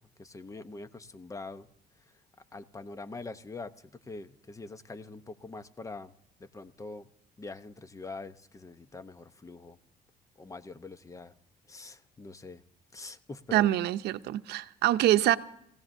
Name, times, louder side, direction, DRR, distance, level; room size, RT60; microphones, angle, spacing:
voice 1, 0.0-1.7 2.0-2.1 2.5-6.1 6.4-7.1 7.4-9.8 10.4-11.3 11.7-12.6 12.9-13.7, left 3 dB, 20° left, 0.8 m, -44 dB
voice 2, 13.5-15.4, right 13 dB, 75° right, 0.7 m, -25 dB
28.0 x 16.0 x 2.6 m
cardioid pair, 110°, 17 cm